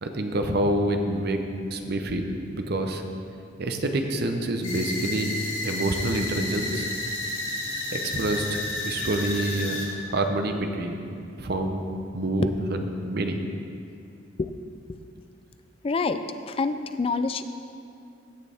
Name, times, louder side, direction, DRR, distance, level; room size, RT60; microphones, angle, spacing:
voice 1, 0.0-1.4 1.7-3.0 3.6-5.3 5.6-6.9 7.9-9.8 10.1-11.8 12.1-13.4, right 1 dB, 55° right, 5 dB, 0.8 m, -27 dB
sound 1, 4.6-9.9, left 2 dB, 80° left, 2.6 m, -31 dB
voice 2, 15.8-17.4, left 4 dB, 30° left, 10 dB, 0.3 m, -27 dB
16.0 x 6.7 x 3.5 m, 2.5 s
head